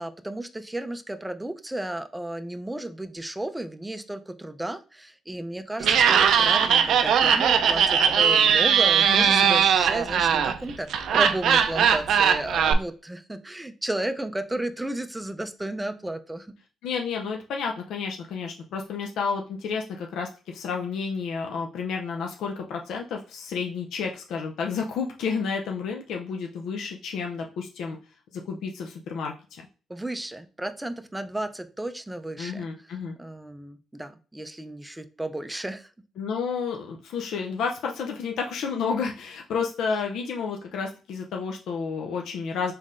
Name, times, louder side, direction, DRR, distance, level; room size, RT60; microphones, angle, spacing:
voice 1, 0.0-16.5 29.9-35.9, right 1 dB, 10° right, 9 dB, 0.4 m, -33 dB
Laughter, 5.8-12.7, right 7 dB, 70° right, 0.4 m, -20 dB
voice 2, 9.1-9.6 16.8-28.0 28.3-29.6 32.4-33.1 36.2-42.7, left 5 dB, 75° left, 2 dB, 0.5 m, -31 dB
4.1 x 3.6 x 2.5 m, 0.37 s
cardioid pair, 90°, 0 cm